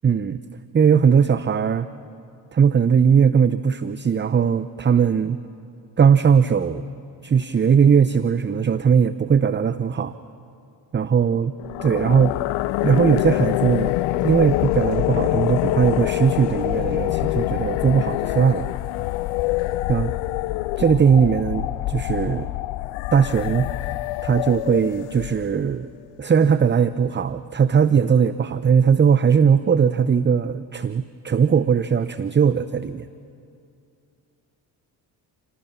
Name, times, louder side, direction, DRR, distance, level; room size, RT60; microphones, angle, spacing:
voice 1, 0.0-0.4 0.7-1.9 2.5-5.4 6.0-6.8 7.2-10.1 10.9-11.5 11.8-12.4 12.8-14.0 14.2-18.7 19.9-20.1 20.8-22.5 23.1-23.9 24.2-25.9 26.2-33.1, right 7 dB, 20° right, 14 dB, 0.7 m, -19 dB
sound 1, 11.6-25.7, left 18 dB, 70° left, 0.6 m, -25 dB
27.5 x 18.5 x 7.4 m, 2.5 s
hypercardioid pair, 50°, 50 cm